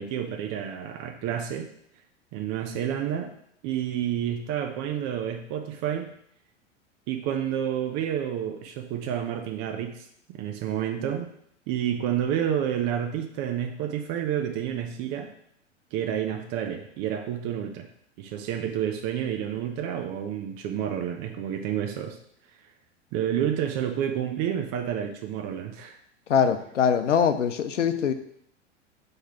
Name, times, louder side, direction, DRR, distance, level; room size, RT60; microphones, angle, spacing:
voice 1, 0.0-1.7 2.3-3.3 3.6-6.1 7.1-10.1 10.3-11.3 11.7-15.3 15.9-17.9 18.2-22.2 23.1-26.0, right 9 dB, 45° right, 4 dB, 0.9 m, -29 dB
voice 2, 26.3-28.1, left 7 dB, 80° left, 9 dB, 0.7 m, -23 dB
6.5 x 3.3 x 5.9 m, 0.68 s
hypercardioid pair, 95°, 36 cm